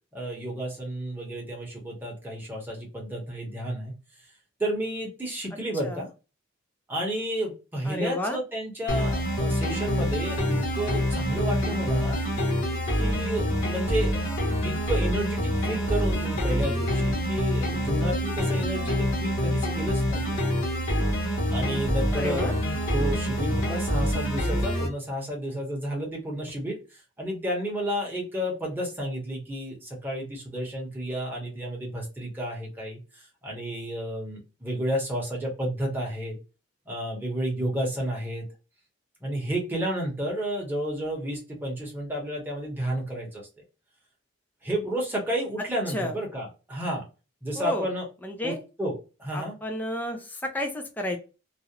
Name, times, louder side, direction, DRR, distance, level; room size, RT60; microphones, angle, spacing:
voice 1, 0.1-3.9 4.6-6.1 6.9-12.2 12.9-20.4 21.5-22.5 22.9-36.4 36.9-38.4 39.2-43.4 44.6-47.0 47.4-48.1 48.4-49.5, right 1 dB, 10° right, -3 dB, 0.8 m, -31 dB
voice 2, 7.8-8.4 22.1-22.5 45.9-46.1 47.6-47.9 48.2-48.6 49.3-51.2, left 1 dB, 10° left, 3 dB, 0.4 m, -31 dB
sound 1, 8.9-24.9, equal, 60° left, 0.8 m, -26 dB
2.4 x 2.0 x 2.8 m, 0.31 s
head